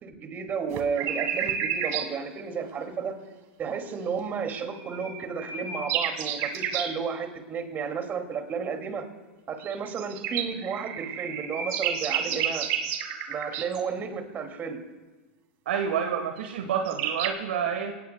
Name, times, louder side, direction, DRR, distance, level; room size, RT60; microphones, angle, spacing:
voice 1, 0.0-3.2 3.6-9.1 9.5-12.7 13.3-14.9, right 6 dB, 30° right, 5 dB, 2.4 m, -32 dB
sound 1, 0.7-2.1 4.6-6.9 9.6-13.8 16.4-16.5 16.7-17.3, right 8 dB, 50° right, 2.0 m, -30 dB
voice 2, 15.6-17.9, right 7 dB, 75° right, 6 dB, 1.4 m, -28 dB
28.5 x 18.5 x 2.3 m, 1.3 s
hypercardioid pair, 100°, 6 cm